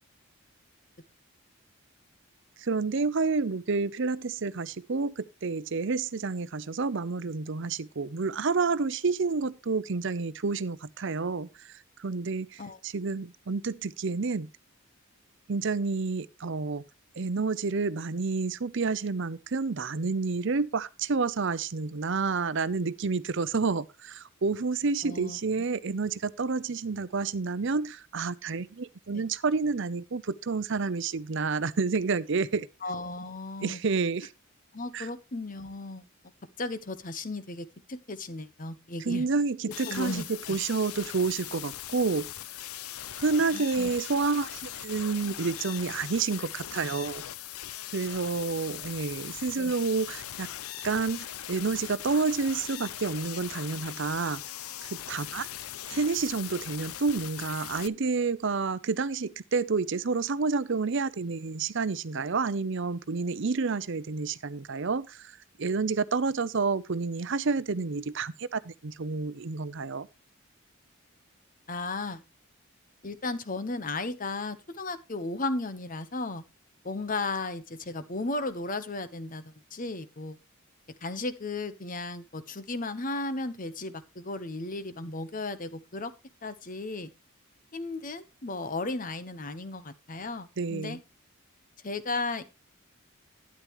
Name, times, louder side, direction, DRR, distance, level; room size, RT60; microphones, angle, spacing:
voice 1, 2.6-11.5 12.0-14.5 15.5-16.8 17.2-32.7 33.6-34.3 34.9-35.1 39.1-42.3 43.2-47.2 47.9-50.5 50.8-54.4 54.9-55.5 55.9-65.3 65.6-70.1 90.6-91.0, right 4 dB, 60° right, 0.6 m, -29 dB
voice 2, 25.0-25.4 29.1-29.2 32.8-33.8 34.7-36.0 36.6-39.3 39.7-40.6 43.5-43.9 49.5-49.7 71.7-72.2 73.0-76.4 76.8-80.4 81.0-86.1 86.4-87.1 87.7-91.0 91.8-92.5, left 2 dB, 40° left, 1.0 m, -35 dB
sound 1, 39.7-57.9, left 12 dB, 85° left, 0.6 m, -40 dB
12.5 x 9.7 x 3.1 m
head